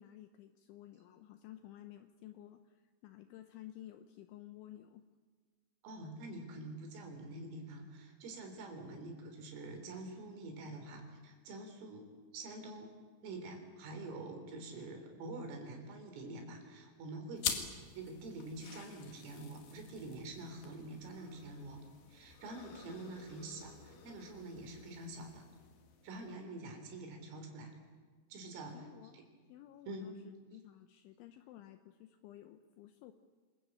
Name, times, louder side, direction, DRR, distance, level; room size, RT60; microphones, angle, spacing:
voice 1, 0.0-5.0 28.7-29.2 29.5-33.1, left 13 dB, 75° left, 9 dB, 3.0 m, -54 dB
voice 2, 5.8-12.1 12.3-12.9 13.2-17.7 17.9-21.8 22.1-25.4 26.0-27.7 28.3-28.8 29.1-29.2 29.8-30.1, right 2 dB, 80° right, 4 dB, 6.2 m, -46 dB
sound 1, 17.4-26.4, left 7 dB, 55° left, 3.5 m, -46 dB
27.5 x 21.5 x 8.8 m, 1.5 s
omnidirectional pair, 5.9 m